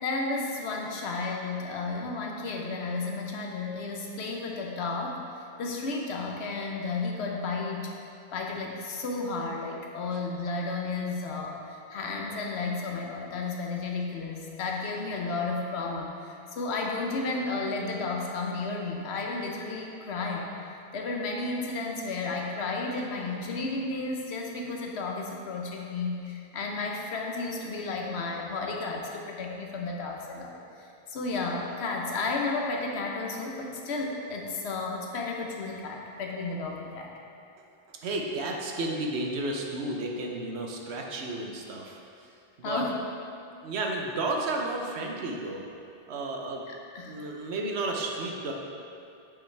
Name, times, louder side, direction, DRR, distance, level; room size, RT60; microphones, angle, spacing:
voice 1, 0.0-5.2 5.6-7.9 8.3-20.5 20.9-37.1 42.6-43.0 46.7-47.2, left 3 dB, 85° left, 0 dB, 1.1 m, -33 dB
voice 2, 38.0-42.0 42.6-42.8 43.6-45.7 46.1-46.6 47.1-48.5, right 2 dB, 85° right, 0 dB, 1.0 m, -32 dB
7.1 x 5.9 x 3.3 m, 2.6 s
omnidirectional pair, 1.1 m